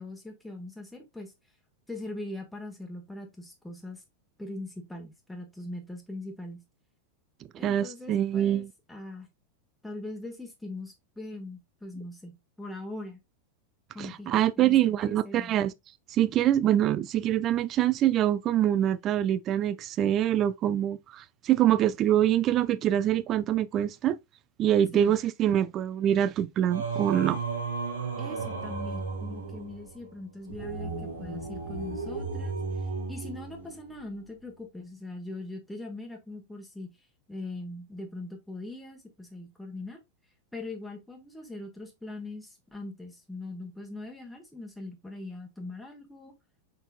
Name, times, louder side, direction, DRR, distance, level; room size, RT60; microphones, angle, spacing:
voice 1, 0.0-1.3 1.9-4.0 4.4-6.6 7.6-9.3 9.8-13.2 13.9-15.5 24.9-25.1 28.2-32.6 33.1-37.0 37.3-40.0 40.5-46.3, left 2 dB, 5° left, 1.1 m, -41 dB
voice 2, 7.6-8.7 14.0-15.7 16.1-24.2 24.6-27.4, right 11 dB, 30° right, 0.3 m, -25 dB
Singing, 26.7-34.1, right 4 dB, 75° right, 1.7 m, -34 dB
5.3 x 4.1 x 2.3 m
figure-of-eight pair, 90°, 0 cm